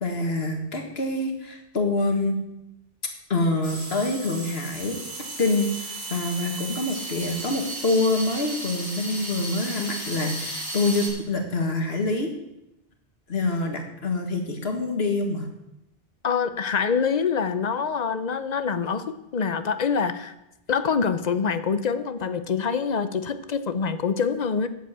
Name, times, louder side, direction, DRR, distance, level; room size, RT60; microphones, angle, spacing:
voice 1, 0.0-2.4 3.3-5.0 5.4-12.3 13.3-15.5, left 2 dB, 70° left, 3 dB, 2.0 m, -26 dB
sound 1, 3.6-11.1, right 1 dB, 65° right, 3.7 m, -35 dB
voice 2, 16.2-20.3 20.7-24.7, left 6 dB, 45° left, 11 dB, 0.8 m, -25 dB
8.4 x 7.3 x 8.6 m, 0.89 s
omnidirectional pair, 1.1 m